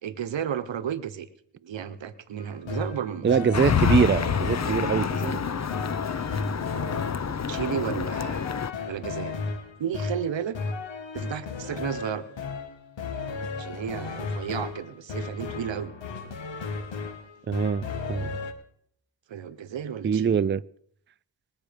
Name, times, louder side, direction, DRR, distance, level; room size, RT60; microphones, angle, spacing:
voice 1, 0.0-1.3 1.6-3.3 4.6-5.7 6.7-6.8 7.2-8.4 8.9-9.3 9.8-10.6 11.1-12.3 13.6-15.9 19.3-20.4, right 8 dB, 85° right, 1.0 m, -33 dB
sound 1, 2.4-18.5, left 4 dB, 85° left, 1.5 m, -35 dB
voice 2, 3.2-5.1 17.5-18.4 20.0-20.6, right 7 dB, 25° right, 0.4 m, -23 dB
sound 2, 3.5-8.7, left 7 dB, 40° left, 0.7 m, -27 dB
21.5 x 7.5 x 5.1 m
cardioid pair, 45°, 44 cm